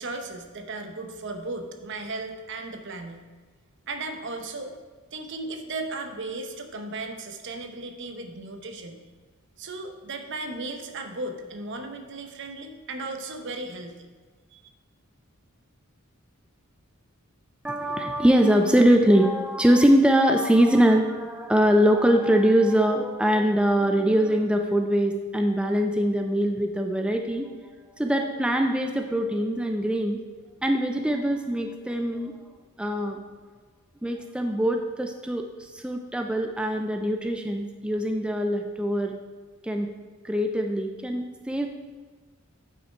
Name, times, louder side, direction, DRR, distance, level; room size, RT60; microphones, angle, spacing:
voice 1, 0.0-3.3 3.9-4.8 5.1-9.0 9.6-14.1 14.5-14.6, right 2 dB, 60° right, 6 dB, 0.9 m, -36 dB
voice 2, 17.6-27.5 28.0-30.2 30.6-32.4 32.8-33.2 34.0-39.1 39.6-39.9 40.2-41.7, equal, 5° right, 4 dB, 0.4 m, -22 dB
8.7 x 5.6 x 4.5 m, 1.4 s
head